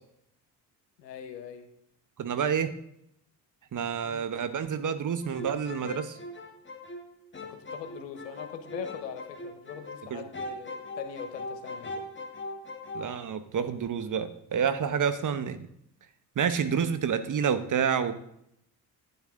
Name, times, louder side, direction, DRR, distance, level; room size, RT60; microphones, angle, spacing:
voice 1, 1.0-1.7 2.6-2.7 4.0-4.3 7.5-12.1, left 7 dB, 85° left, 7 dB, 1.2 m, -41 dB
voice 2, 2.2-2.7 3.7-6.2 10.1-10.2 12.9-15.6 16.4-18.1, right 7 dB, 40° right, 11 dB, 1.1 m, -28 dB
sound 1, 5.2-10.1 10.3-13.1, left 2 dB, 25° left, 1.7 m, -40 dB
12.0 x 9.5 x 3.8 m, 0.74 s
hypercardioid pair, 55°, 48 cm